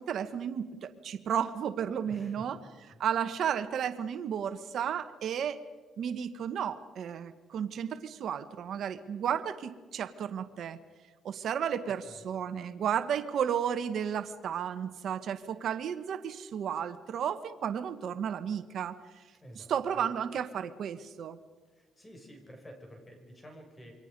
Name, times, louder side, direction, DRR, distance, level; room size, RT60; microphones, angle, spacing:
voice 1, 0.0-2.6 3.0-5.6 6.0-10.8 11.2-19.2 19.5-21.4, right 8 dB, 65° right, 11 dB, 1.1 m, -33 dB
voice 2, 2.0-2.5 2.9-3.0 11.8-12.2 19.4-20.1 21.7-23.9, equal, 20° left, 2 dB, 6.0 m, -51 dB
27.5 x 24.5 x 5.2 m, 1.4 s
cardioid pair, 90°, 0 cm